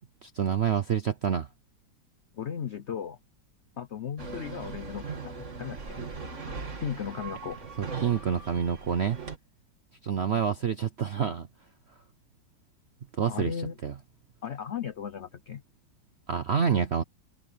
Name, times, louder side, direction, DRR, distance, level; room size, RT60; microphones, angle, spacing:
voice 1, 0.2-1.5 7.8-9.2 10.0-11.5 13.2-13.5 13.8-13.9 16.3-17.0, right 7 dB, 60° right, 0.6 m, -27 dB
voice 2, 2.3-3.2 3.8-6.0 6.8-7.6 10.3-10.4 13.3-13.8 14.4-15.6, left 8 dB, 75° left, 0.6 m, -36 dB
sound 1, 4.2-9.4, right 4 dB, 40° right, 2.4 m, -39 dB
omnidirectional pair, 2.1 m